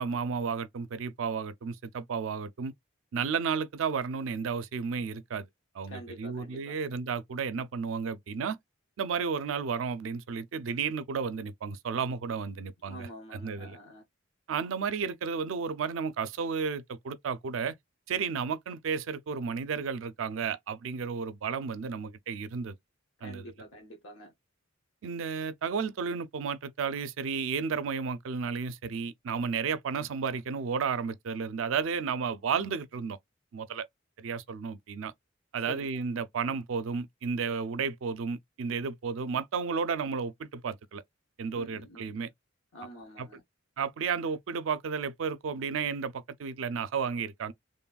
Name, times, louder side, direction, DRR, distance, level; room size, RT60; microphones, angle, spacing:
voice 1, 0.0-2.7 3.1-5.5 5.7-8.6 9.0-13.8 14.5-17.8 18.1-22.7 23.2-23.5 25.0-33.2 33.5-33.9 34.2-35.1 35.5-41.0 41.4-42.3 43.2-43.4 43.8-47.5, right 5 dB, 80° right, 0.4 m, -32 dB
voice 2, 5.9-6.8 12.9-14.0 23.2-24.3 35.7-35.9 41.5-42.2 42.7-43.4, equal, 85° left, 0.9 m, -46 dB
3.0 x 2.2 x 2.2 m
head